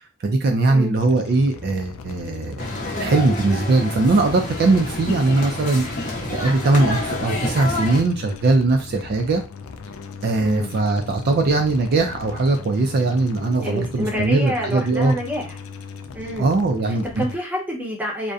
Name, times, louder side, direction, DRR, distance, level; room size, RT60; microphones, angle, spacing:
voice 1, 0.2-2.5 2.9-5.8 6.3-9.4 10.2-15.2 16.4-17.2, right 3 dB, 50° right, 4 dB, 0.3 m, -20 dB
sound 1, 0.9-17.4, left 5 dB, 80° left, 0.3 m, -38 dB
sound 2, 2.6-8.0, left 2 dB, 40° left, 0.6 m, -28 dB
voice 2, 10.4-10.7 13.6-15.6 16.1-16.5 17.2-18.3, equal, 10° right, -1 dB, 0.7 m, -27 dB
2.6 x 2.1 x 2.4 m, 0.31 s
head